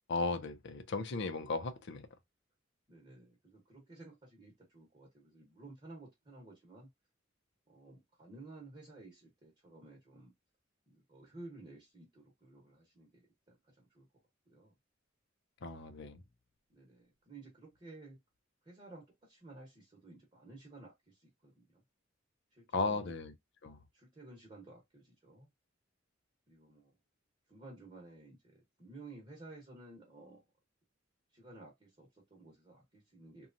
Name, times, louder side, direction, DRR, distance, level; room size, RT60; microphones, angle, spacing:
voice 1, 0.1-2.1 15.6-16.2 22.7-23.3 23.6-23.8, left 3 dB, 60° left, 0.5 m, -36 dB
voice 2, 2.9-6.9 7.7-10.3 10.9-14.1 14.5-14.7 16.7-18.2 18.6-21.8 22.6-23.1 23.9-25.5 26.5-26.9 27.5-30.4 31.3-33.5, right 2 dB, 30° right, 1.0 m, -54 dB
3.0 x 2.3 x 2.5 m
head